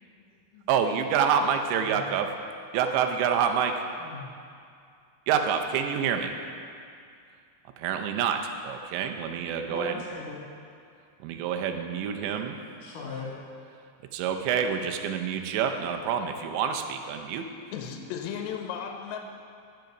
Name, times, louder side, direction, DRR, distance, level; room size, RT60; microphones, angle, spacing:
voice 1, 0.0-0.7 1.7-2.1 4.0-4.2 9.7-10.4 12.8-13.4, left 4 dB, 60° left, -4 dB, 2.5 m, -40 dB
voice 2, 0.7-2.3 2.7-3.8 5.3-6.3 7.8-9.9 11.2-12.6 14.1-17.5, right 7 dB, 80° right, 5 dB, 2.7 m, -27 dB
voice 3, 17.7-19.2, left 8 dB, 80° left, 3 dB, 2.6 m, -35 dB
14.0 x 6.4 x 5.9 m, 2.4 s
omnidirectional pair, 5.5 m